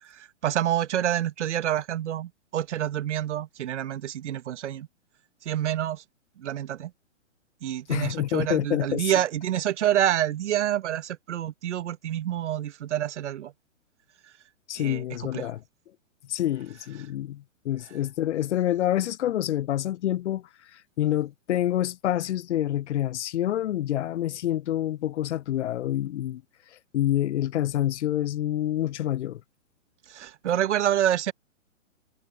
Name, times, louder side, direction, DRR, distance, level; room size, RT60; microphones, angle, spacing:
voice 1, 0.0-4.9 5.4-6.0 6.4-6.9 7.6-13.5 14.8-15.5 30.1-31.3, right 11 dB, 60° right, 1.3 m, -27 dB
voice 2, 7.9-9.1 14.7-15.6 16.3-20.4 21.0-26.4 26.9-29.4, left 12 dB, 60° left, 0.5 m, -27 dB
hypercardioid pair, 135°, 40 cm